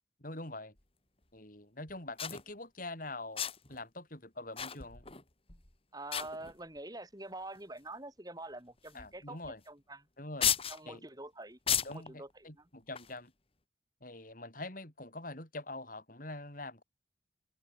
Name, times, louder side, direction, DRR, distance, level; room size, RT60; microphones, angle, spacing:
voice 1, 0.2-0.7 1.3-5.0 8.9-9.6 10.2-10.5 10.9-11.0 11.8-13.3 14.0-16.8, left 2 dB, 45° left, 6.6 m, -44 dB
sound 1, 0.8-0.9 1.9-2.4 3.3-3.8 4.6-5.2 5.5-5.7 6.1-6.8 7.5-7.6 8.9-9.1 9.4-9.5 10.4-10.8 11.7-12.1 12.9-13.2, left 9 dB, 30° left, 2.9 m, -34 dB
voice 2, 5.9-9.4 9.7-10.0 10.7-12.7, right 2 dB, 20° right, 7.4 m, -46 dB
open air
head